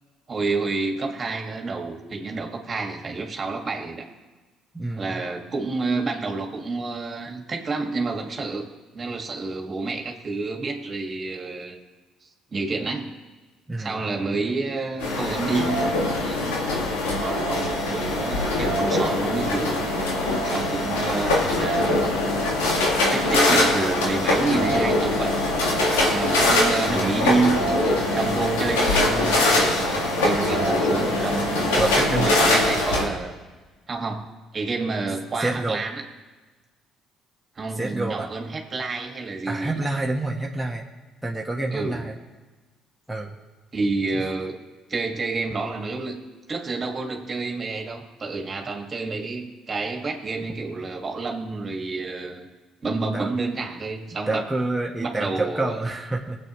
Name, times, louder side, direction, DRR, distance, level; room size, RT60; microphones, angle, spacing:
voice 1, 0.3-4.1 5.0-8.7 8.9-11.8 12.5-13.1 13.8-15.8 16.1-16.6 17.0-19.8 20.4-22.1 23.1-25.4 25.9-27.6 28.1-33.3 33.9-34.3 34.5-36.0 37.6-39.9 41.7-42.1 43.7-44.6 44.9-52.5 52.8-54.4 55.0-55.8, right 3 dB, 40° right, 2 dB, 2.0 m, -29 dB
voice 2, 4.7-5.2 13.7-14.0 31.8-32.3 35.4-35.8 37.8-38.3 39.5-40.8 41.2-42.1 43.1-43.3 53.1-53.3 54.3-56.4, right 2 dB, 5° right, -3 dB, 1.4 m, -27 dB
sound 1, 15.0-33.0, left 1 dB, 90° left, 2.0 m, -22 dB
19.5 x 8.1 x 3.2 m, 1.3 s
hypercardioid pair, 60°, 0 cm